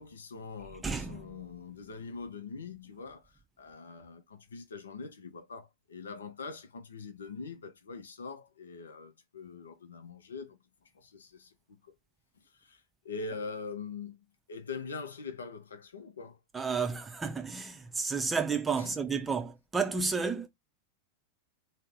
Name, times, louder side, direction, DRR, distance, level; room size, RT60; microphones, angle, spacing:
voice 1, 0.0-10.6 10.9-11.5 11.8-12.0 12.5-16.4 18.8-19.0, left 4 dB, 70° left, 0.5 m, -43 dB
voice 2, 0.8-1.3 16.5-20.5, right 5 dB, 15° right, 0.5 m, -31 dB
2.6 x 2.0 x 3.6 m
figure-of-eight pair, 90°, 0 cm